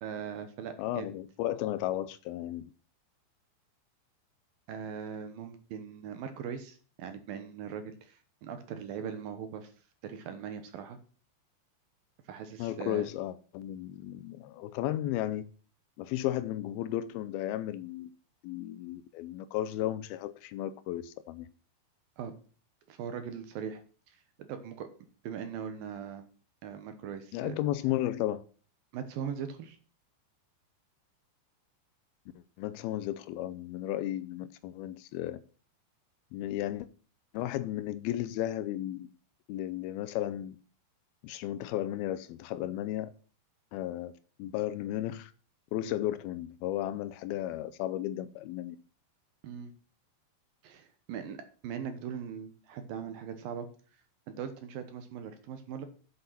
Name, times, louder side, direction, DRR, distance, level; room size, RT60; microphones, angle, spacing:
voice 1, 0.0-1.1 4.7-9.7 10.0-11.0 12.3-13.1 22.2-22.3 22.9-23.8 24.1-24.9 25.2-26.3 26.6-27.6 28.9-29.8 49.4-49.7 50.6-53.7 54.3-55.9, right 7 dB, 70° right, 2.5 m, -40 dB
voice 2, 0.8-2.7 12.6-15.5 16.0-18.1 18.4-21.5 27.3-28.4 32.6-35.4 36.3-36.9 37.3-39.1 39.5-40.6 41.2-43.1 43.7-44.1 44.4-45.3 45.7-48.8, left 13 dB, 85° left, 2.1 m, -34 dB
8.7 x 7.7 x 5.7 m
omnidirectional pair, 5.0 m